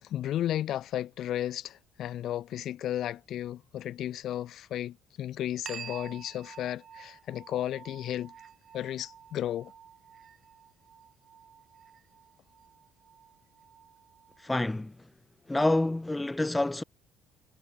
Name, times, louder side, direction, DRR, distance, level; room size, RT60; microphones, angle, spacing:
voice 1, 0.0-8.3 8.7-9.7, left 12 dB, 65° left, 1.9 m, -34 dB
sound 1, 5.7-14.7, right 8 dB, 50° right, 2.8 m, -50 dB
voice 2, 14.4-14.9 15.5-16.8, left 2 dB, 15° left, 0.6 m, -27 dB
hypercardioid pair, 65°, 0 cm